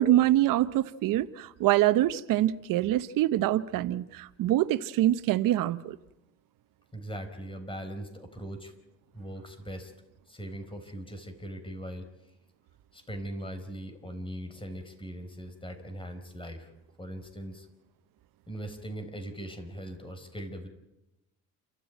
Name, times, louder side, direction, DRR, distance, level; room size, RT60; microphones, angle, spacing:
voice 1, 0.0-6.0, right 14 dB, 80° right, 0.8 m, -25 dB
voice 2, 6.9-8.7 9.1-9.9 10.3-12.1 12.9-16.7 17.0-17.7 18.5-20.7, right 1 dB, 15° left, 4.5 m, -40 dB
28.5 x 13.0 x 9.3 m
cardioid pair, 100°, 32 cm